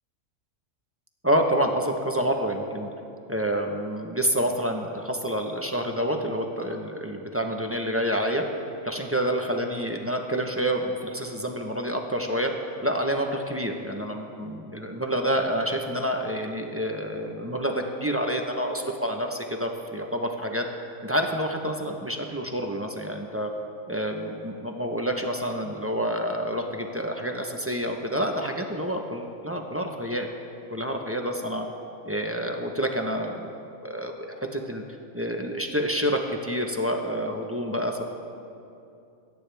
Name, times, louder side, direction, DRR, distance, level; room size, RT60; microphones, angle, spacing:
voice 1, 1.2-2.9 3.3-8.4 8.8-12.5 12.8-20.6 21.0-23.5 23.9-30.3 30.7-31.7 32.1-33.5 33.8-34.8 35.1-38.0, equal, 10° right, 2 dB, 0.8 m, -28 dB
29.0 x 9.6 x 3.5 m, 2.7 s
omnidirectional pair, 1.4 m